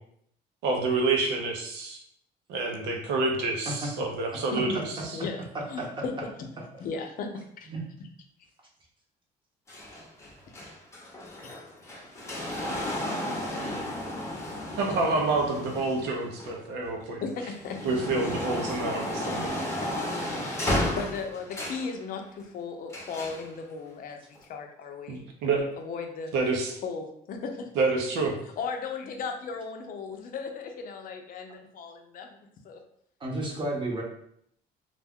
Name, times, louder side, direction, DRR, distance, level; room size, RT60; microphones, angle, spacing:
voice 1, 0.6-2.0 2.5-5.2 14.8-17.2 17.8-19.5 25.1-25.7 26.3-26.8 27.8-28.3, right 3 dB, 85° right, 1 dB, 0.7 m, -28 dB
voice 2, 4.5-6.1 6.4-6.5 6.8-7.3 7.6-7.7 13.4-13.5 17.2-17.9 20.5-26.3 26.8-27.7 28.6-32.4 32.6-32.8, left 5 dB, 55° left, 4 dB, 0.5 m, -36 dB
sound 1, 9.7-16.9 17.4-21.9 22.9-23.5 24.3-24.4, left 1 dB, 15° left, 0.8 m, -33 dB
voice 3, 33.2-34.0, right 1 dB, 30° right, -1 dB, 0.9 m, -32 dB
2.4 x 2.2 x 3.5 m, 0.70 s
cardioid pair, 110°, 17 cm